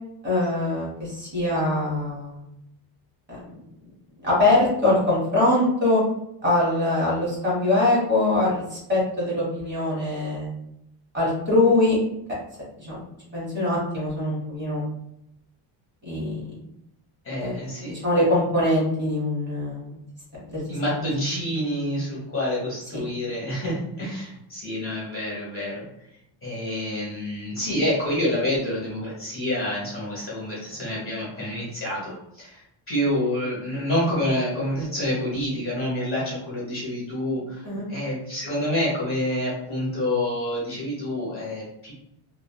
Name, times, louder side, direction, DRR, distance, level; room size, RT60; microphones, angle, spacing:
voice 1, 0.2-2.5 3.3-3.7 4.2-6.0 6.4-10.5 11.1-12.0 12.8-13.0 13.3-14.8 16.0-16.4 17.4-20.0 20.3-20.6 37.6-37.9, left 2 dB, 20° right, -7 dB, 1.4 m, -23 dB
voice 2, 17.2-17.9 20.7-25.8 26.4-41.9, left 1 dB, 25° left, -7 dB, 1.3 m, -28 dB
3.4 x 2.4 x 2.3 m, 0.81 s
cardioid pair, 145°, 49 cm